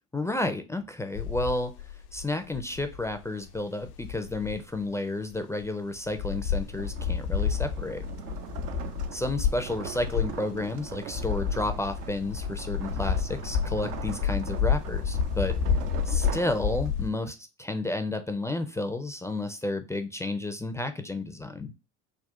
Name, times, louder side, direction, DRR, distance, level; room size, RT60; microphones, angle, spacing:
voice 1, 0.1-1.7 2.1-8.0 9.1-15.6 16.1-21.7, left 2 dB, 5° left, 7 dB, 0.4 m, -31 dB
sound 1, 1.1-4.8 5.3-5.4 5.6-5.7 6.0-17.1, left 7 dB, 80° left, 0.6 m, -30 dB
sound 2, 6.2-17.2, right 8 dB, 85° right, 0.6 m, -41 dB
3.7 x 2.3 x 4.5 m, 0.28 s
hypercardioid pair, 65°, 46 cm